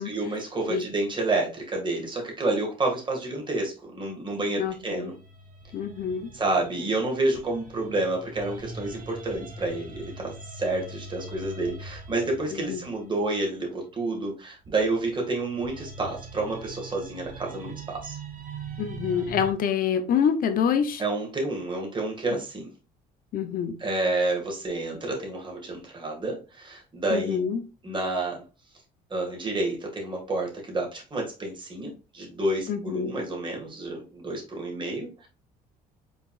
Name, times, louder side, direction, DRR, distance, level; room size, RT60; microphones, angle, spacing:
voice 1, 0.0-5.1 6.3-18.2 21.0-22.7 23.8-27.4 27.8-28.4 29.1-35.3, right 2 dB, 30° right, 2.0 m, -29 dB
voice 2, 4.6-5.1 5.7-6.3 12.5-12.8 18.8-21.0 23.3-23.7 27.1-27.6 32.7-33.2, left 7 dB, 60° left, 0.8 m, -26 dB
sound 1, 4.6-13.8 14.6-19.5, right 3 dB, 50° right, 1.5 m, -42 dB
5.2 x 4.1 x 2.5 m
cardioid pair, 110°, 17 cm